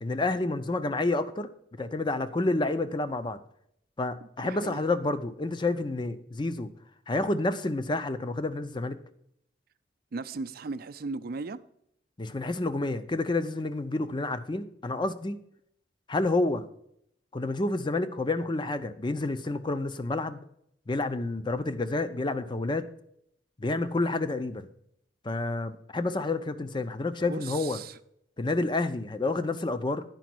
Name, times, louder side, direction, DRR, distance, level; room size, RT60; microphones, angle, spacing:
voice 1, 0.0-1.5 1.8-3.4 4.0-6.7 7.1-9.0 12.2-15.4 16.1-16.7 17.3-20.4 20.9-22.9 23.6-24.7 25.2-27.8 28.4-30.0, left 2 dB, 25° left, 0.6 m, -29 dB
voice 2, 4.4-4.9 10.1-11.6 27.2-28.0, right 4 dB, 55° right, 0.5 m, -37 dB
10.5 x 5.1 x 6.1 m
head